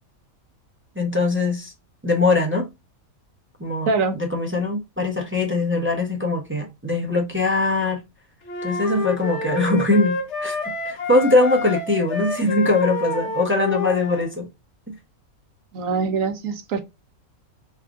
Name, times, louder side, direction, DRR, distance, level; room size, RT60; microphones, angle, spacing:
voice 1, 1.0-1.7 2.0-2.7 3.6-3.9 4.2-8.0 8.6-14.5 14.9-15.0, left 2 dB, 15° right, 0.4 m, -21 dB
sound 1, 8.5-14.3, left 3 dB, 55° left, 1.0 m, -28 dB
voice 2, 15.7-16.8, right 4 dB, 70° right, 1.0 m, -23 dB
3.6 x 2.4 x 3.4 m
omnidirectional pair, 1.5 m